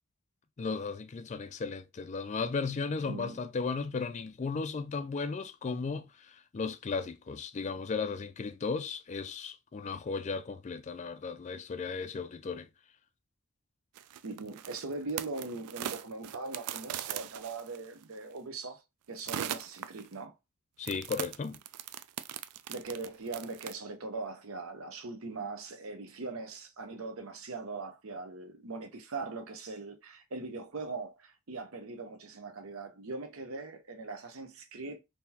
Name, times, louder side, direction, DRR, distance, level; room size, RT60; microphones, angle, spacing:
voice 1, 0.6-12.7 20.8-21.6, left 4 dB, 30° left, 0.3 m, -35 dB
voice 2, 3.0-3.4 14.2-18.8 19.1-20.3 22.7-35.0, right 3 dB, 65° right, 0.8 m, -40 dB
sound 1, 13.9-18.0 19.2-20.2 20.8-23.7, right 10 dB, 90° right, 0.3 m, -40 dB
3.8 x 2.8 x 2.8 m
head